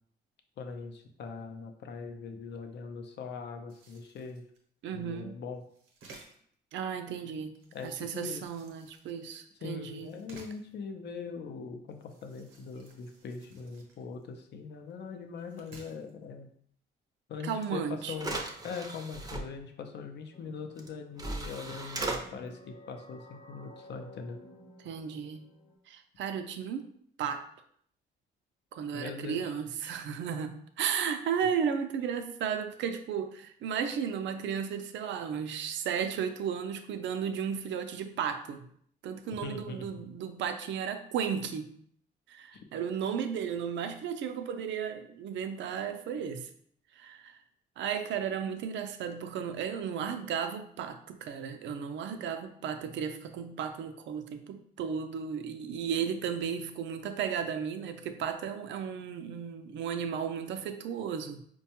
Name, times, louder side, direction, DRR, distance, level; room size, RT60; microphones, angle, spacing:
voice 1, 0.6-4.4 4.9-5.6 7.7-8.4 9.6-16.5 17.3-18.4 18.6-24.4 28.9-29.5 39.4-39.9 42.5-42.6, left 5 dB, 60° left, 6 dB, 0.5 m, -41 dB
sound 1, 3.7-4.6 5.6-6.5 7.5-9.4 10.0-10.7 11.9-14.4 14.9-15.0 15.4-16.1, right 3 dB, 85° right, 0.8 m, -55 dB
voice 2, 4.8-5.4 6.7-7.6 7.8-10.2 17.4-18.2 24.8-25.5 25.9-26.9 27.2-27.4 28.7-38.7 39.0-41.7 42.3-46.5 46.9-47.4 47.8-61.4, right 7 dB, 70° right, 8 dB, 0.4 m, -34 dB
sound 2, 17.6-17.7 18.1-19.4 20.8-20.9 21.2-22.2, right 2 dB, 20° right, 0.5 m, -36 dB
sound 3, 20.3-25.8, left 1 dB, 25° left, 0.7 m, -54 dB
4.4 x 2.2 x 2.8 m, 0.65 s
cardioid pair, 90°, 20 cm